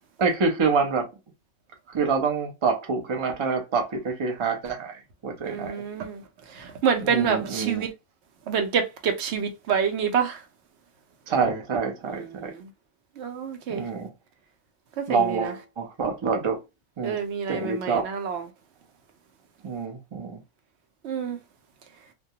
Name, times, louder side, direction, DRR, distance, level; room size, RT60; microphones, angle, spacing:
voice 1, 0.2-1.1 1.9-5.7 7.0-7.9 11.3-12.5 13.7-14.1 15.1-16.6 17.0-17.2 17.5-18.1 19.6-20.4, right 5 dB, 45° right, 0.3 m, -26 dB
voice 2, 5.4-6.2 6.5-7.9 8.5-10.4 12.1-12.7 13.2-13.8 15.0-15.5 17.0-18.4 21.0-21.4, right 7 dB, 70° right, 0.8 m, -27 dB
2.2 x 2.2 x 2.7 m
omnidirectional pair, 1.3 m